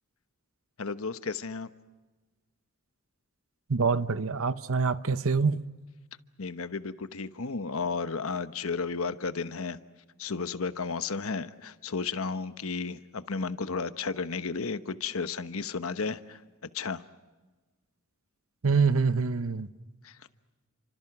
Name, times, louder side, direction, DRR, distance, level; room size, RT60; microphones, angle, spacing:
voice 1, 0.8-1.7 6.4-9.8 10.2-16.4 16.7-17.0 20.0-20.2, left 4 dB, 70° left, 1.0 m, -33 dB
voice 2, 3.7-5.6 18.6-19.7, right 4 dB, 65° right, 0.9 m, -25 dB
30.0 x 25.5 x 6.0 m
head